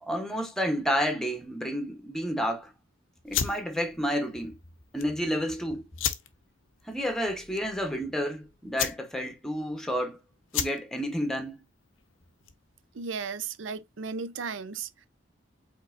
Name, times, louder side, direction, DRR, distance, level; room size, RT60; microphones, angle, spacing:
voice 1, 0.0-2.7 3.2-4.6 4.9-5.8 6.9-10.2 10.5-11.5, equal, 5° left, 0.9 m, -30 dB
sound 1, 3.2-12.8, left 9 dB, 80° left, 0.7 m, -36 dB
voice 2, 12.9-15.1, right 5 dB, 70° right, 0.6 m, -35 dB
5.3 x 3.8 x 2.5 m
head